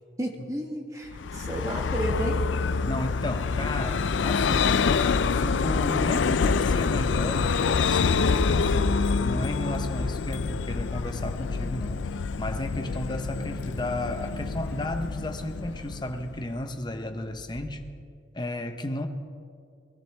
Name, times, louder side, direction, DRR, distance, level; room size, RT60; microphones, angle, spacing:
voice 1, 0.2-2.4, right 1 dB, 20° right, 0 dB, 1.7 m, -32 dB
Vehicle, 1.1-16.6, left 5 dB, 80° left, 0.4 m, -26 dB
voice 2, 2.8-5.0 5.2-12.0 12.4-17.8 18.3-19.1, left 1 dB, 25° left, 6 dB, 0.8 m, -33 dB
sound 1, 8.1-17.8, equal, 90° right, 2.4 m, -49 dB
22.5 x 14.0 x 3.5 m, 2.3 s
head